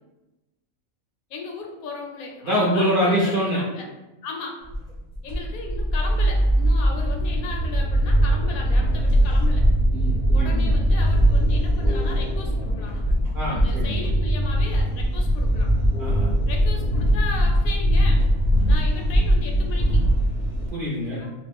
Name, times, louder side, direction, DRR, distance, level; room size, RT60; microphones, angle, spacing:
voice 1, 1.3-3.9 4.2-4.6 5.2-9.7 10.3-13.1 13.5-15.7 16.5-18.3 18.7-20.0 21.1-21.3, left 4 dB, 85° left, 1 dB, 1.0 m, -36 dB
voice 2, 2.4-3.6 9.9-10.8 13.3-14.1 16.0-16.3 20.7-21.2, equal, 60° right, -6 dB, 0.5 m, -24 dB
sound 1, 4.7-20.7, equal, 50° left, 0.5 m, -21 dB
2.5 x 2.1 x 3.3 m, 1.1 s
omnidirectional pair, 1.5 m